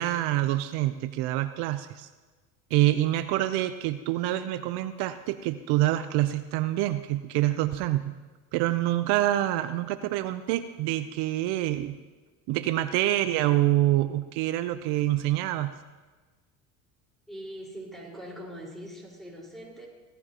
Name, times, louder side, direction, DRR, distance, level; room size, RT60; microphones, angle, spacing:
voice 1, 0.0-2.1 2.7-8.1 8.5-12.0 12.5-15.7, right 15 dB, 70° right, 11 dB, 0.7 m, -26 dB
voice 2, 17.3-19.9, equal, ahead, -2 dB, 4.5 m, -42 dB
17.0 x 13.5 x 2.9 m, 1.3 s
supercardioid pair, 100°, 40 cm